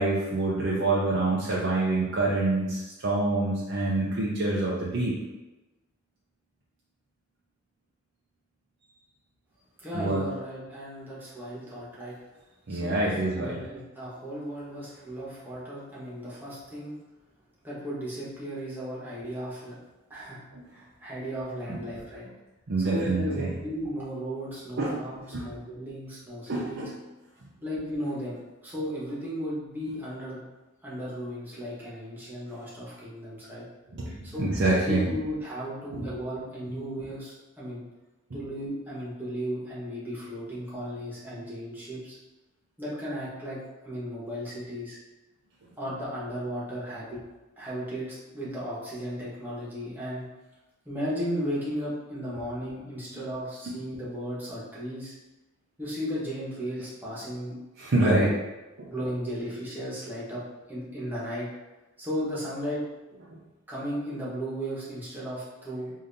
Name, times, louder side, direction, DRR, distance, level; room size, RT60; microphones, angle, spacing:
voice 1, 0.0-5.1 9.9-10.2 12.7-13.6 20.5-20.7 21.7-21.8 22.7-23.5 24.8-25.0 25.3-25.5 26.5-26.9 33.9-35.2 35.9-36.1 38.3-38.4 41.4-41.5 53.2-53.3 53.7-53.9 57.8-58.3 58.8-58.9, right 2 dB, 60° right, -6 dB, 0.6 m, -26 dB
voice 2, 9.8-12.1 12.7-16.9 17.6-19.8 20.1-20.4 20.7-22.2 22.8-26.8 27.6-30.4 30.8-33.6 34.2-34.4 34.9-37.8 38.3-42.2 42.8-43.6 43.8-45.0 45.8-47.2 47.6-50.3 50.8-55.1 55.8-57.5 57.9-58.3 58.9-60.4 60.7-61.5 62.0-62.8 63.7-65.9, equal, 10° right, -8 dB, 1.2 m, -35 dB
5.0 x 2.8 x 2.7 m, 1.1 s
head